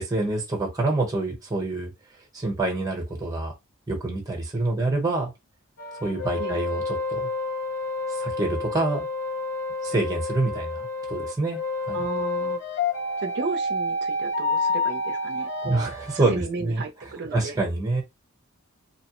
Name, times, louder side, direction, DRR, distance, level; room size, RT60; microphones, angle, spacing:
voice 1, 0.0-1.9 2.3-3.5 3.9-5.3 6.0-6.8 7.1-7.3 8.2-9.1 9.8-11.6 11.9-12.0 15.6-16.8 17.3-18.0, right 2 dB, 15° right, 0.9 m, -26 dB
sound 1, 5.8-16.4, left 2 dB, 65° left, 0.7 m, -29 dB
voice 2, 11.9-12.6 13.2-17.6, right 3 dB, 50° right, 0.5 m, -34 dB
2.8 x 2.1 x 2.9 m
head